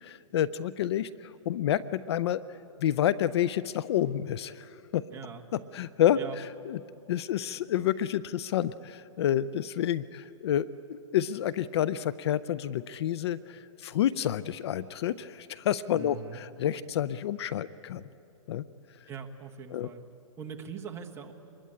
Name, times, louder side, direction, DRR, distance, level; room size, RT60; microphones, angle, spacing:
voice 1, 0.0-5.1 5.7-6.2 6.7-6.8 7.1-18.0 18.5-18.6 19.7-19.9, left 11 dB, 50° left, 18 dB, 0.5 m, -29 dB
voice 2, 5.1-5.4 6.1-6.4 15.9-16.4 19.1-20.0 20.4-21.3, right 6 dB, 15° right, 2 dB, 1.3 m, -41 dB
25.0 x 21.5 x 8.8 m, 3.0 s
hypercardioid pair, 150°, 18 cm